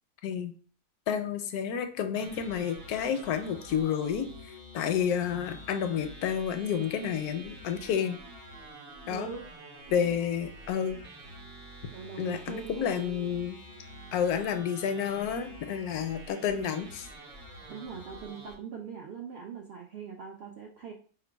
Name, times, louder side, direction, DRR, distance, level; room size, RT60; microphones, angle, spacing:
voice 1, 0.2-0.5 1.1-8.2 9.1-9.3 9.9-11.0 12.2-13.6 14.1-17.1, left 8 dB, 80° left, 7 dB, 1.0 m, -30 dB
sound 1, 2.1-18.5, right 1 dB, 45° right, 1.0 m, -48 dB
voice 2, 9.1-9.5 9.9-10.2 11.9-13.4 17.7-20.9, right 6 dB, 70° right, 1 dB, 0.6 m, -42 dB
3.7 x 2.3 x 4.4 m, 0.43 s
omnidirectional pair, 1.6 m